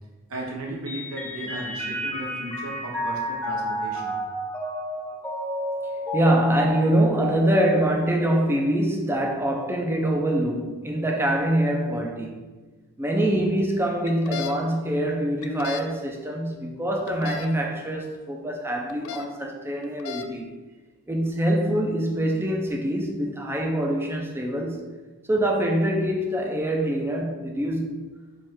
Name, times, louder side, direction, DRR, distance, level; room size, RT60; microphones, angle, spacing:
voice 1, 0.3-4.2, right 2 dB, 85° right, -2 dB, 0.9 m, -35 dB
Mallet percussion, 0.9-8.6, right 1 dB, 10° left, 0.8 m, -31 dB
voice 2, 6.1-12.4 13.0-20.5 21.1-24.9 25.3-28.0, right 1 dB, 10° right, 1 dB, 0.4 m, -24 dB
sound 1, 14.1-14.5 15.4-15.9 17.1-17.5 18.9-19.3 19.8-20.3, left 8 dB, 90° left, 0.4 m, -34 dB
4.8 x 2.4 x 4.3 m, 1.3 s
head